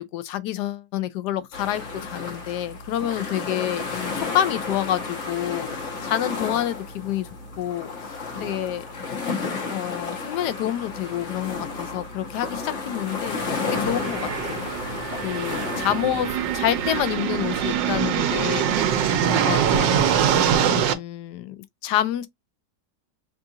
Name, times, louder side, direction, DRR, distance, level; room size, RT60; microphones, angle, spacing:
voice 1, 0.0-7.3 7.6-7.9 8.4-8.9 9.7-13.4 13.7-14.7 15.2-18.7 19.2-20.2 20.7-21.6 21.8-22.3, left 12 dB, 75° left, 1.1 m, -28 dB
sound 1, 1.5-17.0, left 4 dB, 45° left, 1.2 m, -32 dB
sound 2, 13.7-20.9, right 8 dB, 85° right, 1.4 m, -23 dB
5.4 x 2.4 x 2.7 m
omnidirectional pair, 1.9 m